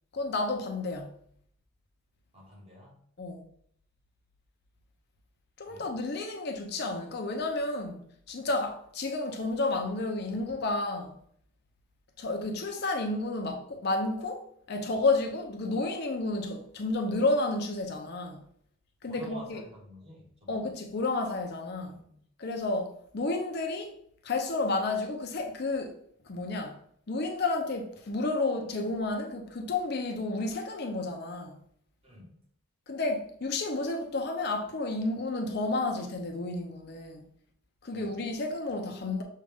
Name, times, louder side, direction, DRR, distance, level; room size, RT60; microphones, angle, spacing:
voice 1, 0.1-1.2 3.2-3.5 5.6-11.1 12.2-18.4 19.0-19.6 20.5-21.9 22.4-23.9 24.2-26.0 26.3-26.8 27.1-31.6 32.9-37.3 37.8-39.2, left 2 dB, 50° left, 0.6 m, -31 dB
voice 2, 2.3-3.1 5.7-5.9 19.0-20.7 21.8-22.2 32.0-32.4 37.9-38.2, left 1 dB, 30° right, 1.2 m, -50 dB
6.4 x 2.4 x 3.4 m
head